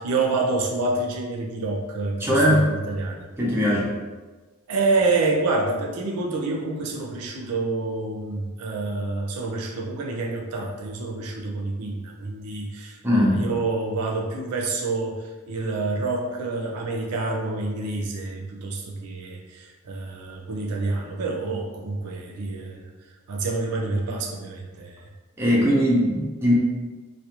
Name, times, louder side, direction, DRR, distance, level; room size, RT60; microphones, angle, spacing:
voice 1, 0.0-3.2 4.7-22.9 23.3-25.0, right 3 dB, 85° right, 1 dB, 0.4 m, -27 dB
voice 2, 2.2-2.7 3.4-3.9 13.0-13.5 25.4-26.5, equal, 10° right, -5 dB, 0.5 m, -20 dB
2.3 x 2.1 x 2.8 m, 1.3 s
head